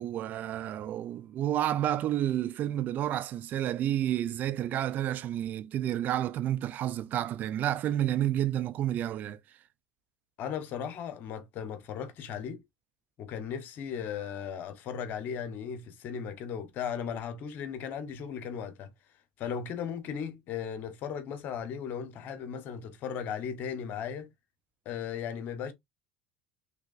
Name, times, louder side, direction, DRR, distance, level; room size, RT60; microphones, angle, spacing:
voice 1, 0.0-9.4, right 12 dB, 50° right, 0.5 m, -30 dB
voice 2, 10.4-12.6 13.2-18.9 19.4-24.3 24.8-25.7, left 7 dB, 55° left, 1.2 m, -36 dB
4.9 x 3.5 x 2.6 m
hypercardioid pair, 75°, 4 cm